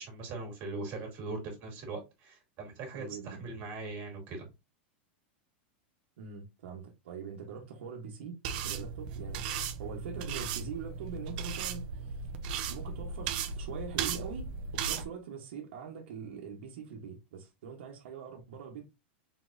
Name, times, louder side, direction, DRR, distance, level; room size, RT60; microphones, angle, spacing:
voice 1, 0.0-4.5, right 3 dB, 35° right, 2.2 m, -40 dB
voice 2, 2.9-3.5 6.2-8.4 8.6-12.3 12.7-18.8, right 6 dB, 80° right, 1.2 m, -43 dB
sound 1, 8.4-15.0, right 6 dB, 50° right, 0.6 m, -36 dB
4.1 x 4.0 x 2.6 m
supercardioid pair, 165°, 6 cm